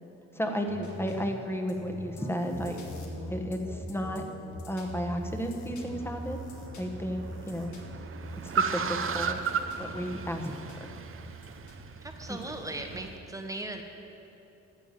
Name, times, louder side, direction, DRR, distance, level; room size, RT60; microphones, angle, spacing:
voice 1, 0.3-2.8 3.3-4.2 4.7-6.4 6.8-7.7 8.4-9.4 9.8-10.5 10.8-10.9 12.3-12.4, equal, 10° left, 4 dB, 1.2 m, -33 dB
sound 1, 0.7-13.2, left 1 dB, 75° left, 2.0 m, -43 dB
Car, 5.7-13.1, right 6 dB, 45° right, 0.7 m, -35 dB
voice 2, 12.0-13.8, right 2 dB, 10° right, 4 dB, 1.2 m, -38 dB
12.5 x 7.1 x 7.5 m, 3.0 s
cardioid pair, 90°, 30 cm